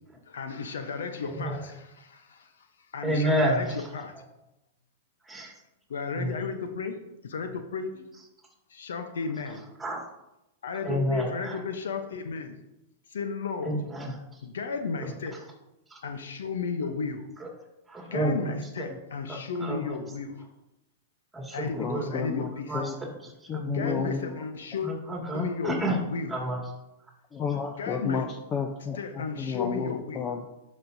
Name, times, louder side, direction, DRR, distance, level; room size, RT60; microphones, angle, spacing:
voice 1, 0.3-2.5 2.9-3.7 3.9-4.1 5.9-8.1 8.7-9.6 10.6-12.6 13.1-13.8 14.4-15.4 16.0-17.3 18.1-20.4 21.5-22.7 23.6-24.9 25.3-25.8 26.0-26.3 27.8-28.3 28.9-30.3, left 5 dB, 75° left, 7 dB, 0.8 m, -34 dB
voice 2, 1.2-1.7 3.0-4.2 5.2-5.5 6.1-6.4 9.8-10.0 10.8-11.6 13.6-14.4 15.0-15.1 15.9-16.0 17.4-17.5 17.9-19.0 19.3-20.0 21.3-22.1 22.7-24.0 24.8-26.0 26.3-26.6, right 1 dB, 10° right, -1 dB, 2.2 m, -30 dB
voice 3, 21.7-22.9 23.5-24.3 27.3-30.5, left 6 dB, 30° left, 3 dB, 0.6 m, -32 dB
11.0 x 5.3 x 2.7 m, 0.93 s
hypercardioid pair, 110°, 0 cm